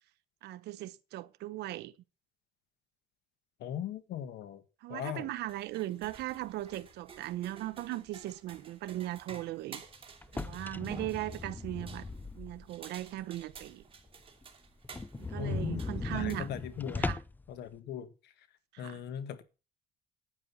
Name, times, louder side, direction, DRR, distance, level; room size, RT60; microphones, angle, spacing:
voice 1, 0.4-1.9 4.8-9.8 10.3-12.1 12.3-13.8 15.1-16.5 17.0-17.2 18.7-19.0, right 15 dB, 80° right, 1.0 m, -38 dB
voice 2, 3.6-4.6 4.9-5.3 15.4-17.1 17.5-18.1 18.8-19.4, left 9 dB, 75° left, 1.8 m, -39 dB
sound 1, 5.4-17.0, right 6 dB, 35° right, 2.7 m, -53 dB
sound 2, 10.2-12.8 13.2-13.3 13.7-13.8 14.1-14.2 14.4-14.5 14.8-17.5, left 3 dB, 10° left, 0.5 m, -38 dB
10.0 x 9.1 x 7.0 m
cardioid pair, 110°, 17 cm